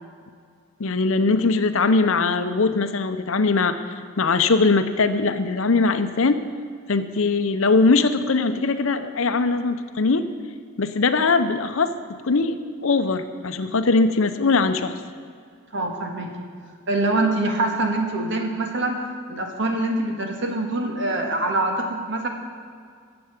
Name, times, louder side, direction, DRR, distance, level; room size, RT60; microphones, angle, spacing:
voice 1, 0.8-3.8 4.2-6.4 6.9-10.3 10.8-11.9 12.2-15.0, left 3 dB, 65° left, 10 dB, 0.7 m, -21 dB
voice 2, 15.7-16.5 16.9-19.0 19.3-22.3, right 2 dB, 55° right, 2 dB, 1.7 m, -24 dB
13.0 x 7.9 x 7.3 m, 2.2 s
head